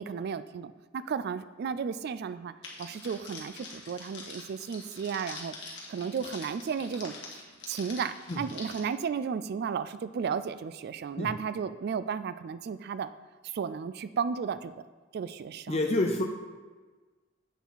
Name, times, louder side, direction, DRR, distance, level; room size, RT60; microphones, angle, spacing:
voice 1, 0.0-2.5 2.8-7.1 7.7-13.1 13.4-14.7 15.1-15.8, right 6 dB, 55° right, 13 dB, 0.3 m, -34 dB
Crackle, 2.6-8.8, left 3 dB, 65° left, 1.7 m, -45 dB
voice 2, 15.7-16.2, left 2 dB, 30° left, 3 dB, 0.6 m, -27 dB
8.1 x 6.3 x 4.0 m, 1.3 s
head